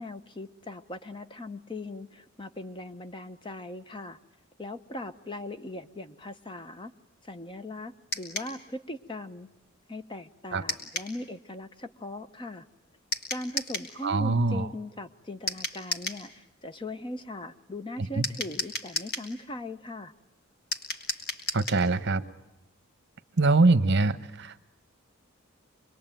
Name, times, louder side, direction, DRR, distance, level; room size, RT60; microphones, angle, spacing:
voice 1, 0.0-4.2 4.6-6.9 7.2-9.5 9.9-12.6 13.3-20.1, left 1 dB, 25° left, 10 dB, 0.9 m, -39 dB
sound 1, 8.1-8.5 10.7-11.1 13.1-13.9 15.5-16.2 18.2-19.3 20.7-21.8, left 2 dB, 50° left, 3.5 m, -33 dB
voice 2, 14.0-14.7 18.2-18.3 21.5-22.2 23.4-24.7, right 3 dB, 55° right, 12 dB, 1.1 m, -23 dB
26.5 x 22.0 x 9.1 m, 0.93 s
head